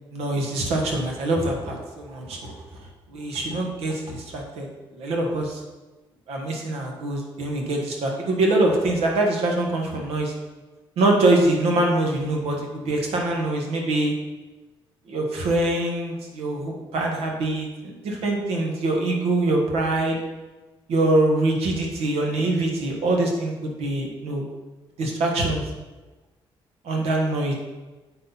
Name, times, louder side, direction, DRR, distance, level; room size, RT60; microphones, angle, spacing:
voice 1, 0.1-2.5 3.1-4.7 4.9-5.6 6.3-10.3 11.0-14.1 15.1-20.2 20.9-24.5 25.0-25.6 26.8-27.5, right 2 dB, 90° right, 1 dB, 1.5 m, -24 dB
7.8 x 5.7 x 4.0 m, 1.2 s
cardioid pair, 75°, 10 cm